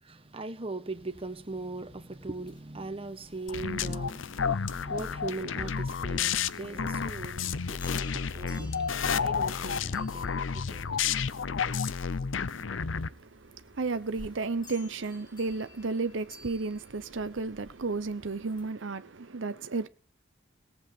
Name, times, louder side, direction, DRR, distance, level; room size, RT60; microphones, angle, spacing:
voice 1, 0.0-11.5, right 2 dB, 30° right, 1.3 m, -40 dB
sound 1, 0.9-18.7, left 2 dB, 25° left, 1.8 m, -55 dB
sound 2, 3.5-13.1, left 6 dB, 80° left, 0.7 m, -31 dB
voice 2, 12.5-19.9, right 3 dB, 75° right, 0.8 m, -33 dB
18.0 x 8.0 x 6.7 m
head